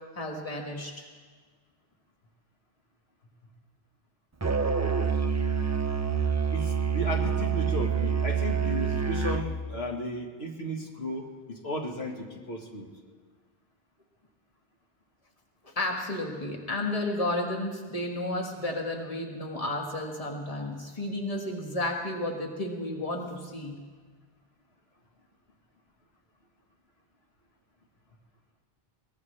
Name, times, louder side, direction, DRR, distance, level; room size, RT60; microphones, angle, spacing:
voice 1, 0.2-1.0 15.6-23.8, left 1 dB, 35° left, 0 dB, 1.9 m, -32 dB
Musical instrument, 4.4-9.5, right 6 dB, 25° right, 0.4 m, -27 dB
voice 2, 6.5-12.9, equal, 80° left, 0 dB, 2.0 m, -35 dB
22.5 x 18.5 x 3.3 m, 1.5 s
omnidirectional pair, 1.0 m